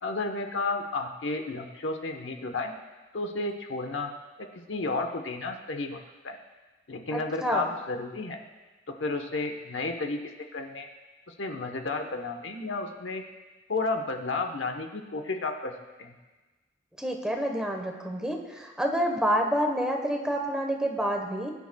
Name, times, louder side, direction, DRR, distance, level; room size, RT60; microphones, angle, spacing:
voice 1, 0.0-2.7 3.1-4.1 4.4-6.0 6.2-6.4 6.9-8.4 8.9-10.2 10.5-10.9 11.3-13.2 13.7-15.7 16.0-16.1, left 3 dB, 85° left, 4 dB, 1.1 m, -32 dB
voice 2, 7.1-7.7 17.0-21.5, equal, 5° right, 2 dB, 1.1 m, -28 dB
20.5 x 10.0 x 2.3 m, 1.2 s
head